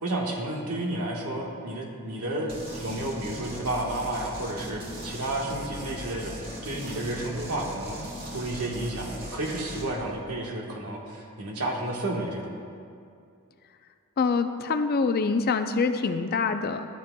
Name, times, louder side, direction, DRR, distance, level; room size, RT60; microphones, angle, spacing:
voice 1, 0.0-12.6, right 1 dB, 85° right, 0 dB, 1.3 m, -31 dB
sound 1, 2.5-9.9, equal, 45° right, 1.8 m, -39 dB
voice 2, 14.2-16.9, left 4 dB, 45° left, 9 dB, 0.4 m, -25 dB
13.0 x 10.5 x 2.2 m, 2.4 s
head